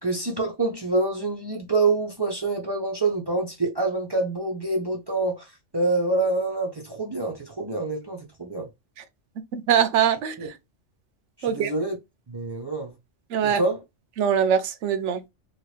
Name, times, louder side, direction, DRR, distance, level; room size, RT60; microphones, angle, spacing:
voice 1, 0.0-5.5 5.7-8.7 10.4-10.5 11.4-12.0 12.3-12.9 13.4-13.8, right 3 dB, 30° right, 0.4 m, -26 dB
voice 2, 9.5-10.3 11.4-11.7 13.3-13.6 14.2-15.2, right 8 dB, 80° right, 0.9 m, -22 dB
2.9 x 2.4 x 3.2 m
omnidirectional pair, 1.2 m